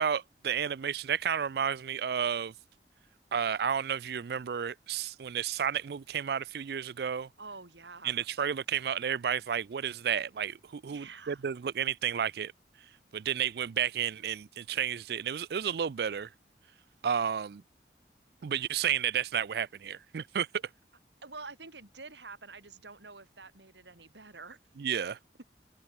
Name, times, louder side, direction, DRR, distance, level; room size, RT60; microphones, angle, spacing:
voice 1, 0.0-2.5 3.3-7.3 8.0-12.5 13.1-16.3 17.0-17.6 18.4-20.6 24.8-25.2, right 8 dB, 65° right, 0.4 m, -31 dB
voice 2, 7.4-8.3 10.9-11.5 21.2-24.6, right 4 dB, 85° right, 3.7 m, -47 dB
head